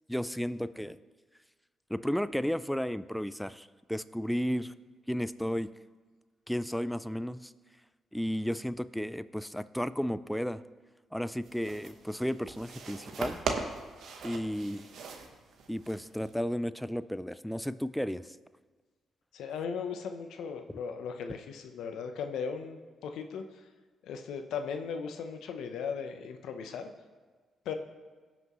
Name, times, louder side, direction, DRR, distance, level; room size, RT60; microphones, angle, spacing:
voice 1, 0.1-1.0 1.9-4.7 5.1-5.7 6.5-7.5 8.1-10.6 11.1-13.4 14.2-14.9 15.7-18.2, equal, ahead, 14 dB, 0.4 m, -33 dB
sound 1, 11.4-16.4, right 4 dB, 75° right, 1.1 m, -40 dB
voice 2, 19.3-23.6 24.0-26.9 27.6-27.7, left 6 dB, 85° left, 6 dB, 0.8 m, -37 dB
18.0 x 6.0 x 3.1 m, 1.4 s
cardioid pair, 75°, 0 cm